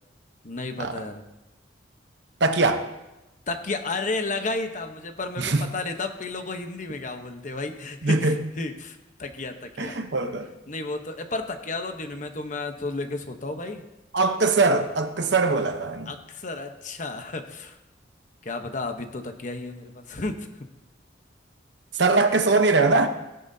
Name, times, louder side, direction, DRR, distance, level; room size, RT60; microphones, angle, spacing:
voice 1, 0.4-1.2 3.5-10.0 10.7-13.8 16.1-17.8 18.4-20.5, left 3 dB, 45° left, 6 dB, 1.0 m, -32 dB
voice 2, 2.4-2.9 5.4-5.7 8.0-8.4 9.8-10.5 14.1-16.1 21.9-23.1, right 3 dB, 70° right, 7 dB, 0.9 m, -21 dB
17.0 x 10.5 x 2.8 m, 0.97 s
head